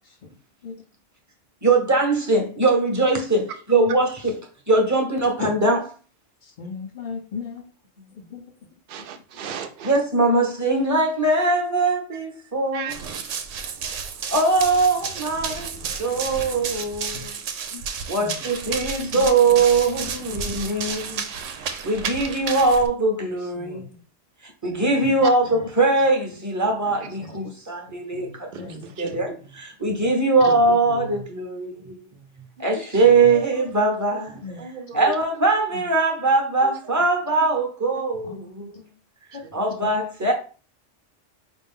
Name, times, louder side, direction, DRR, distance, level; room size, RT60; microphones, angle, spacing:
voice 1, 1.6-4.4 4.7-5.9 9.8-13.0 14.3-17.3 18.1-21.2 21.8-23.8 24.6-28.7 29.0-32.0 32.6-34.4 34.9-38.7 39.3-40.3, right 3 dB, 15° right, 0.7 m, -21 dB
voice 2, 6.6-7.6 8.3-8.4 17.7-17.8 18.2-18.3 19.1-19.2 23.6-23.8 25.5-25.7 27.2-27.4 28.1-29.2 30.5-31.2 33.1-33.2 34.4-34.6 38.2-38.4 39.8-39.9, left 4 dB, 50° left, 0.6 m, -36 dB
voice 3, 8.9-9.9 12.7-12.9 28.5-29.2 30.4-30.5 33.3-33.5 34.6-35.1, right 8 dB, 55° right, 0.7 m, -35 dB
Run, 12.9-22.9, right 6 dB, 85° right, 0.9 m, -32 dB
4.7 x 2.5 x 3.6 m
omnidirectional pair, 1.3 m